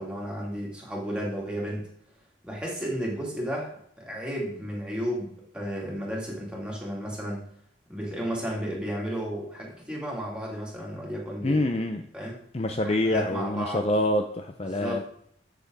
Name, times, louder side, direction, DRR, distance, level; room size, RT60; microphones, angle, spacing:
voice 1, 0.0-1.9 2.4-3.7 4.0-7.4 7.9-11.8 12.1-12.4 12.8-13.8 14.6-15.0, equal, 5° right, -3 dB, 2.9 m, -33 dB
voice 2, 11.4-12.0 12.5-15.1, left 1 dB, 30° left, 6 dB, 0.6 m, -26 dB
13.0 x 6.6 x 4.1 m, 0.68 s
head